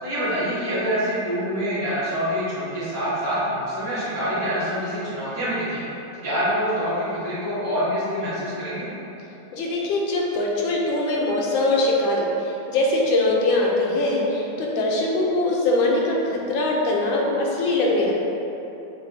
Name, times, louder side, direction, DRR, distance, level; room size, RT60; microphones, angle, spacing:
voice 1, 0.0-5.8 6.2-8.9, equal, 50° right, -13 dB, 1.9 m, -26 dB
voice 2, 9.5-18.2, left 2 dB, 80° left, -2 dB, 1.4 m, -22 dB
7.0 x 2.7 x 2.6 m, 3.0 s
omnidirectional pair, 2.1 m